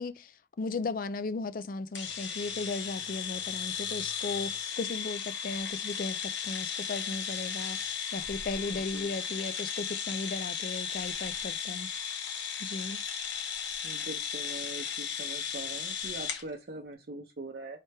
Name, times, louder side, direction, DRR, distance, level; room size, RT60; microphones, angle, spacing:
voice 1, 0.0-7.8 8.1-11.9 12.6-13.0, left 3 dB, 50° left, 0.4 m, -36 dB
sound 1, 1.9-16.4, left 7 dB, 80° left, 1.0 m, -35 dB
voice 2, 8.7-9.1 13.8-17.8, right 2 dB, 55° right, 0.6 m, -42 dB
4.2 x 3.3 x 3.3 m
head